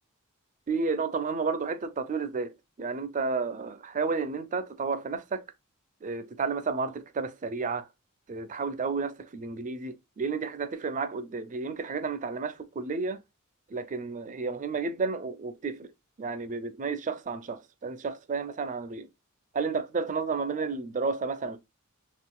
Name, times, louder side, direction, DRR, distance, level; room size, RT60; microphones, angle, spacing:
voice 1, 0.7-2.5 2.8-5.4 6.0-7.9 8.3-13.2 13.7-15.9 16.2-19.1 19.5-21.6, right 4 dB, 35° right, 0.4 m, -31 dB
3.7 x 2.4 x 2.3 m
head